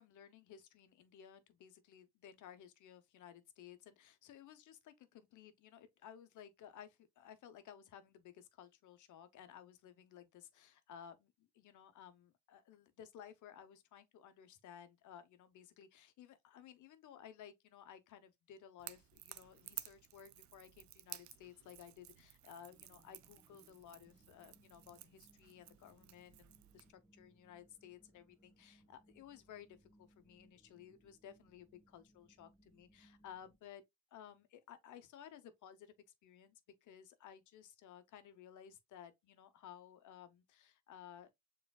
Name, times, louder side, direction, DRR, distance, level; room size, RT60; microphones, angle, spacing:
voice 1, 0.0-33.8 34.1-35.9 36.2-41.3, left 9 dB, 75° left, 0.9 m, -57 dB
Crackle / Crack, 18.8-26.9, right 14 dB, 70° right, 0.5 m, -54 dB
sound 1, 22.7-33.6, right 1 dB, 10° right, 1.3 m, -69 dB
7.0 x 3.2 x 2.3 m
cardioid pair, 90°, 30 cm